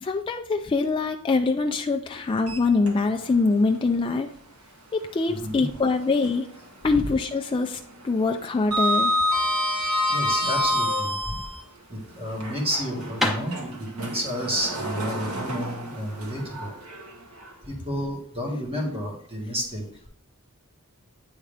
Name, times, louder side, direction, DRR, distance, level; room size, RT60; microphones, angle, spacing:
voice 1, 0.0-4.3 4.9-6.5 6.8-7.8 8.0-9.1, left 3 dB, 20° left, 4 dB, 0.3 m, -24 dB
Sliding door, 2.4-3.4 3.7-3.9 5.6-6.6 6.9-7.3 7.5-11.6 12.3-17.5, left 1 dB, 80° right, 1.2 m, -28 dB
voice 2, 5.3-5.7 7.0-7.1 10.1-11.4 11.9-16.7 17.6-19.8, equal, 25° right, -1 dB, 1.7 m, -31 dB
sound 1, 13.1-16.9, left 2 dB, ahead, 0.8 m, -33 dB
8.8 x 3.7 x 3.3 m, 0.67 s
head